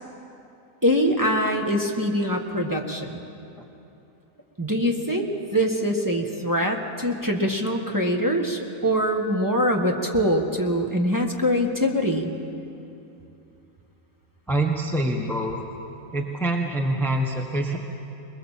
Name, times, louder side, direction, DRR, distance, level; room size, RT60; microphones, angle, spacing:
voice 1, 0.8-3.2 4.6-12.3, equal, 15° right, 0 dB, 1.5 m, -23 dB
voice 2, 14.5-15.6 16.1-17.8, right 1 dB, ahead, 2 dB, 1.2 m, -25 dB
21.5 x 21.5 x 7.4 m, 2.7 s
omnidirectional pair, 1.5 m